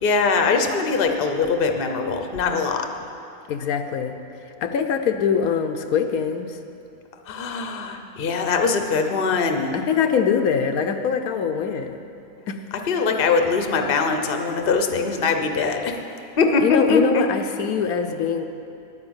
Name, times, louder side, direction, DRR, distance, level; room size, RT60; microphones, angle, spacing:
voice 1, 0.0-2.9 7.3-9.8 12.7-16.0 16.4-17.3, left 4 dB, 45° left, 5 dB, 0.9 m, -22 dB
voice 2, 3.5-4.1 4.6-6.6 9.7-12.0 12.5-12.6 16.6-18.4, left 7 dB, 80° left, 6 dB, 1.1 m, -23 dB
9.7 x 9.7 x 8.0 m, 2.7 s
omnidirectional pair, 1.5 m